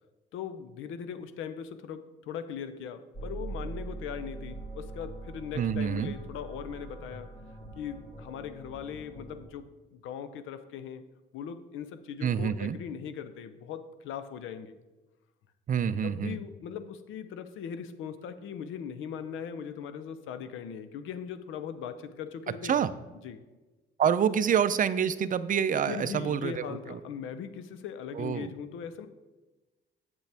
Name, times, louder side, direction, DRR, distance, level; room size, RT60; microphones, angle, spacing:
voice 1, 0.3-7.3 7.8-11.0 11.3-14.8 16.0-22.8 23.2-23.4 25.9-29.1, left 8 dB, 90° left, 11 dB, 0.6 m, -39 dB
sound 1, 3.1-9.4, right 3 dB, 45° left, 2.4 m, -43 dB
voice 2, 5.5-6.1 12.2-12.8 15.7-16.4 22.6-22.9 24.0-27.0 28.1-28.5, right 8 dB, 45° right, 14 dB, 0.5 m, -27 dB
8.0 x 7.0 x 3.4 m, 1.2 s
cardioid pair, 90°, 20 cm